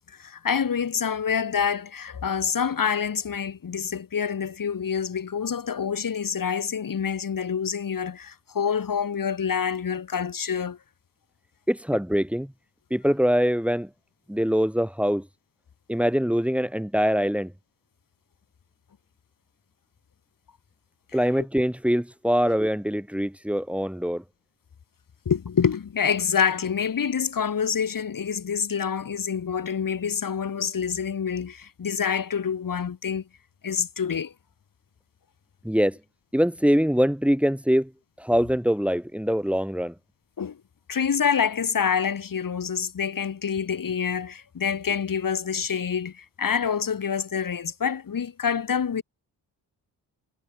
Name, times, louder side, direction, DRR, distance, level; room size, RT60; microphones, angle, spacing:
voice 1, 0.2-10.8 25.2-33.2 33.6-34.3 40.4-40.6 40.9-49.0, left 7 dB, 55° left, 4.7 m, -27 dB
voice 2, 11.7-12.5 12.9-13.9 14.3-15.3 15.9-17.5 21.1-24.2 35.6-36.0 36.3-37.9 38.2-39.9, equal, 5° right, 4.6 m, -23 dB
cardioid pair, 75°, 40 cm